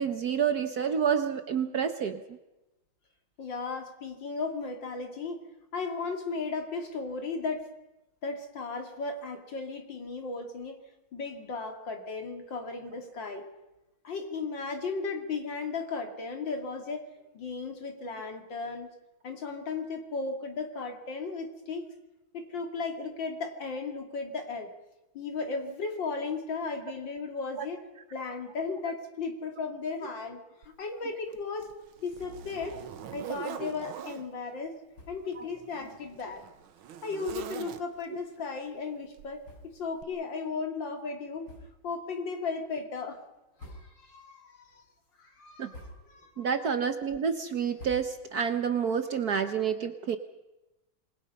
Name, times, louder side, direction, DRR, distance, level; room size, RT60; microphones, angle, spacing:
voice 1, 0.0-2.2 27.6-27.7 33.6-33.7 35.4-35.5 45.6-45.7 46.4-50.2, right 7 dB, 55° right, 9 dB, 1.4 m, -29 dB
voice 2, 3.4-5.4 5.7-7.7 8.2-10.8 11.1-13.4 14.0-17.1 17.3-18.9 19.2-21.8 22.3-24.7 25.1-27.8 28.1-31.7 32.0-32.8 33.1-34.7 35.1-36.4 37.0-39.4 39.7-41.5 41.8-43.2 43.7-44.8 45.2-45.8 46.1-46.4, left 4 dB, 60° left, 4 dB, 3.2 m, -35 dB
Zipper (clothing), 30.6-30.7 31.3-34.3 35.2-38.2 39.2-39.4 40.0-40.1, right 9 dB, 80° right, 1.9 m, -43 dB
sound 1, 32.5-33.0 33.4-33.5 33.8-33.9 34.9-35.3 36.1-36.2 36.9-37.0 37.2-37.8 38.3-38.4 39.4-40.1 40.4-40.6 41.4-42.0 42.4-42.9 43.4-44.2 44.6-45.1 45.5-46.3 46.7-48.5, left 1 dB, 90° left, 6.6 m, -51 dB
26.5 x 21.0 x 5.5 m, 0.99 s
omnidirectional pair, 2.3 m